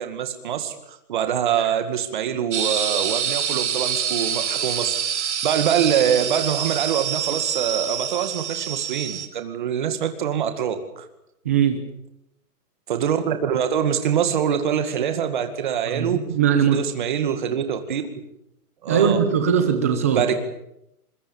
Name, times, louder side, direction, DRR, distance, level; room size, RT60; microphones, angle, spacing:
voice 1, 0.0-11.1 12.9-16.2 16.7-18.0 18.8-19.2 20.1-20.4, right 8 dB, 30° right, 8 dB, 2.1 m, -24 dB
sound 1, 2.5-9.3, right 8 dB, 45° right, 2.1 m, -26 dB
voice 2, 11.4-11.8 15.9-16.8 18.9-20.3, right 7 dB, 10° right, 6 dB, 0.8 m, -20 dB
24.5 x 22.0 x 7.2 m, 0.82 s
hypercardioid pair, 180°, 46 cm